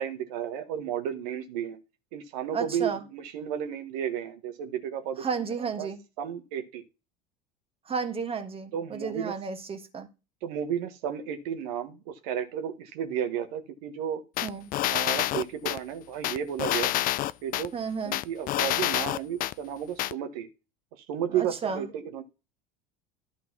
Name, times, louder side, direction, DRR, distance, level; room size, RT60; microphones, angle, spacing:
voice 1, 0.0-1.8 2.1-5.2 5.6-5.9 6.2-6.8 8.7-9.3 10.4-14.2 14.9-16.9 17.4-17.7 18.0-20.5 21.1-22.2, right 9 dB, 65° right, 1.3 m, -33 dB
voice 2, 2.5-3.0 5.2-6.0 7.9-10.1 14.4-14.7 17.7-18.2 21.3-21.8, right 5 dB, 25° right, 1.7 m, -32 dB
sound 1, 14.4-15.8 16.2-17.7 18.1-19.5 20.0-20.1, left 15 dB, 45° left, 0.5 m, -27 dB
11.5 x 3.8 x 6.0 m
hypercardioid pair, 75°, 21 cm